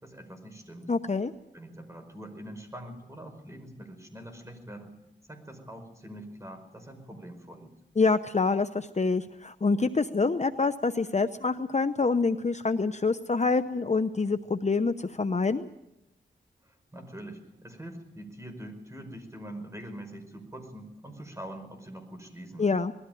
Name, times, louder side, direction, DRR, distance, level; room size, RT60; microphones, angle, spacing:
voice 1, 0.0-0.9 1.5-4.9 5.3-7.7 16.6-22.7, right 1 dB, 15° right, 5 dB, 5.2 m, -44 dB
voice 2, 0.9-1.3 8.0-15.7 22.6-22.9, left 4 dB, 35° left, 10 dB, 0.8 m, -26 dB
20.5 x 14.5 x 9.3 m, 0.89 s
wide cardioid pair, 60°, 19 cm